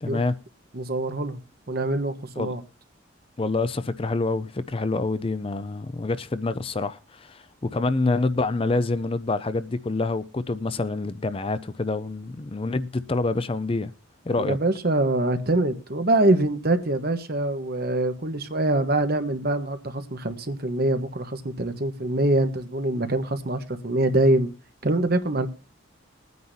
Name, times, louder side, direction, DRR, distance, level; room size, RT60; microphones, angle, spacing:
voice 1, 0.0-0.3 2.4-2.5 3.4-7.4 7.7-13.9 14.3-14.6, left 3 dB, 25° left, 0.5 m, -26 dB
voice 2, 0.7-1.4 1.7-2.6 14.4-24.5 24.8-25.5, right 2 dB, 50° right, 1.2 m, -24 dB
21.5 x 9.5 x 2.7 m
head